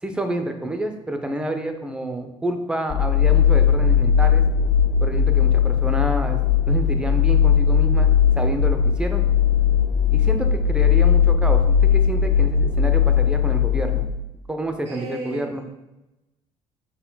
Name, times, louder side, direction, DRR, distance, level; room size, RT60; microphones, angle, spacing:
voice 1, 0.0-4.4 5.0-9.2 10.1-14.0 14.5-15.6, right 1 dB, 10° right, 5 dB, 0.5 m, -29 dB
sound 1, 2.9-14.1, left 7 dB, 60° left, 0.4 m, -18 dB
voice 2, 14.8-15.6, right 1 dB, 65° right, -1 dB, 1.6 m, -34 dB
5.2 x 4.4 x 2.2 m, 0.97 s
cardioid pair, 110°, 12 cm